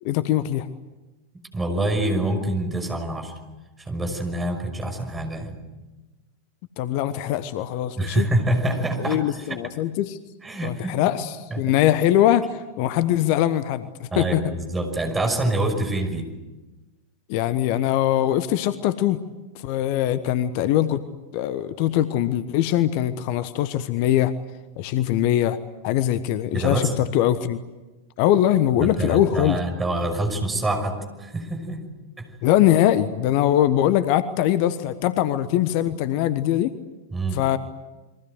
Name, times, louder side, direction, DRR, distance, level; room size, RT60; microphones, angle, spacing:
voice 1, 0.0-0.7 6.8-8.3 9.0-10.2 10.6-14.4 17.3-19.2 19.5-21.0 21.3-24.3 24.8-25.6 25.8-27.6 28.2-29.6 32.4-36.7 37.3-37.6, left 12 dB, 45° left, 13 dB, 1.1 m, -22 dB
voice 2, 1.5-3.3 3.8-5.6 7.9-9.6 10.4-11.1 11.5-11.8 14.1-16.3 26.5-26.9 28.8-31.8 32.2-32.3 37.1-37.4, right 1 dB, 15° right, 5 dB, 5.9 m, -26 dB
29.5 x 23.0 x 7.9 m, 1.1 s
figure-of-eight pair, 90°, 0 cm